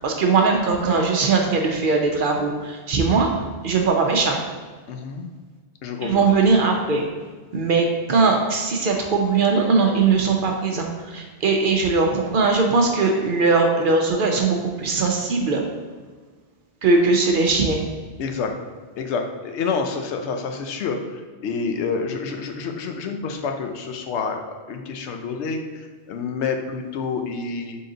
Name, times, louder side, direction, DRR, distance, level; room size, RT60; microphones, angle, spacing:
voice 1, 0.0-3.3 3.6-4.4 6.0-7.1 7.5-15.6 16.8-17.8, right 4 dB, 55° right, 2 dB, 0.7 m, -20 dB
voice 2, 4.9-5.3 5.8-6.3 18.2-18.5 19.0-24.4 24.7-27.8, left 5 dB, 80° left, 5 dB, 0.9 m, -28 dB
3.8 x 3.7 x 3.8 m, 1.5 s
omnidirectional pair, 1.1 m